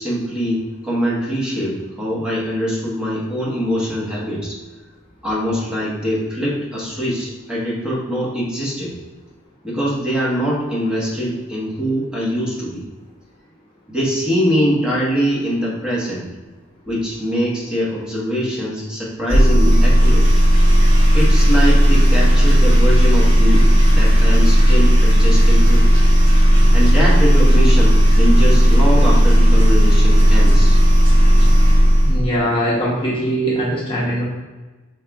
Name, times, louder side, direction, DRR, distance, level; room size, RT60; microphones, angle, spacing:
voice 1, 0.0-4.6 5.2-8.9 9.6-12.8 13.9-16.3 16.9-20.3 21.1-25.9 26.7-30.8, equal, 5° right, -7 dB, 1.1 m, -23 dB
sound 1, 19.3-32.3, equal, 70° right, 1.3 m, -12 dB
voice 2, 32.0-34.2, equal, 25° left, -5 dB, 0.8 m, -21 dB
5.6 x 3.4 x 2.3 m, 1.3 s
head